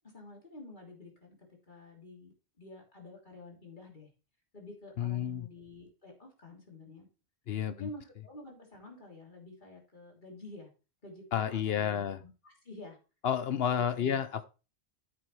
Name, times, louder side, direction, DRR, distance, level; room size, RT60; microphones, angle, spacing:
voice 1, 0.1-1.4 1.7-2.3 2.6-4.1 4.5-7.1 7.7-10.7 11.0-13.0 13.6-14.2, left 2 dB, 45° left, -1 dB, 3.3 m, -50 dB
voice 2, 5.0-5.5 7.5-7.9 11.3-12.2 13.2-14.4, left 8 dB, 70° left, 12 dB, 0.9 m, -31 dB
10.5 x 7.6 x 3.2 m, 0.31 s
omnidirectional pair, 1.1 m